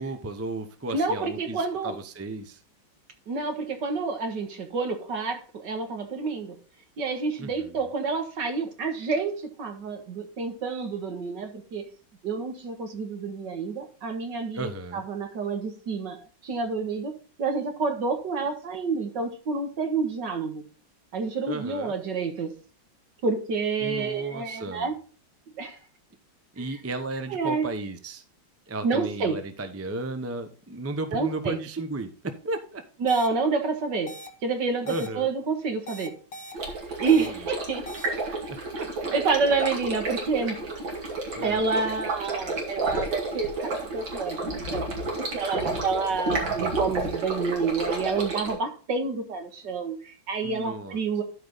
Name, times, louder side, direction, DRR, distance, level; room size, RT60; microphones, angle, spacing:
voice 1, 0.0-2.6 7.4-7.8 14.5-15.0 21.5-21.9 23.8-24.9 26.5-28.2 28.7-32.8 34.9-35.3 37.2-37.4 38.5-39.1 41.4-41.7 50.4-51.0, right 2 dB, 20° right, 9 dB, 0.4 m, -34 dB
voice 2, 0.9-2.0 3.3-6.6 7.0-11.9 12.2-20.6 21.1-22.5 23.2-24.9 25.6-25.8 26.6-26.7 27.3-27.7 28.8-29.4 31.1-31.6 33.0-34.1 34.4-36.1 37.0-38.4 39.1-40.6 41.4-44.8 45.2-51.2, right 4 dB, 70° right, 5 dB, 2.2 m, -28 dB
sound 1, 33.1-33.3 34.1-34.3 34.9-35.1 35.9-36.5 37.1-37.3 37.9-38.1, equal, 75° left, 2.4 m, -40 dB
Stream, 36.5-48.5, right 2 dB, 85° right, 3.1 m, -31 dB
12.5 x 5.1 x 4.0 m, 0.38 s
omnidirectional pair, 2.0 m